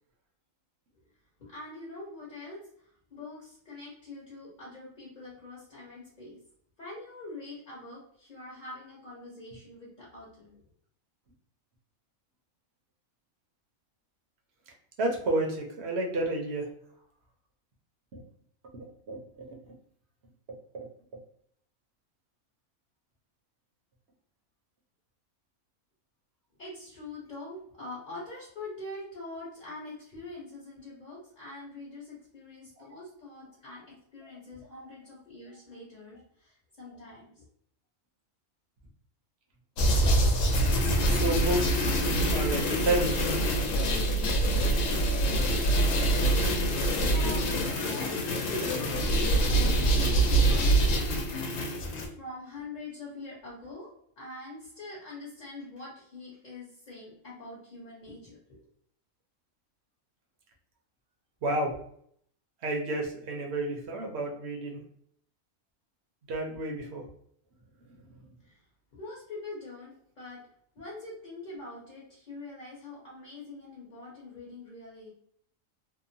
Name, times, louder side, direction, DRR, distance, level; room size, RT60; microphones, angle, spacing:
voice 1, 1.4-6.4 6.8-10.6 26.6-37.4 46.9-50.8 52.1-58.4 68.4-68.6 68.9-70.4 70.7-75.1, left 2 dB, 40° left, -6 dB, 0.9 m, -44 dB
voice 2, 15.0-16.7 18.1-18.2 18.7-19.7 20.7-20.9 32.8-32.9 34.7-34.9 41.0-43.4 61.4-61.7 62.6-64.8 66.3-67.0, right 2 dB, 60° right, 1 dB, 0.9 m, -31 dB
sound 1, 39.8-52.1, right 1 dB, 75° left, 0.9 m, -25 dB
2.8 x 2.0 x 2.6 m, 0.66 s
omnidirectional pair, 1.4 m